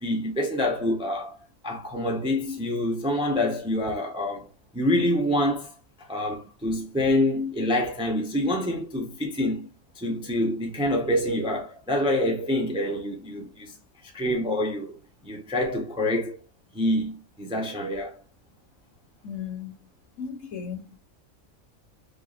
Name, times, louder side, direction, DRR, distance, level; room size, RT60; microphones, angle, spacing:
voice 1, 0.0-1.4 1.6-4.5 4.7-5.7 6.1-9.7 10.0-13.7 14.0-14.9 15.2-16.4 16.7-18.2, left 1 dB, 5° right, 0.5 m, -26 dB
voice 2, 19.2-19.9 20.2-21.0, left 7 dB, 65° left, 1.2 m, -36 dB
3.6 x 2.8 x 2.4 m
omnidirectional pair, 1.4 m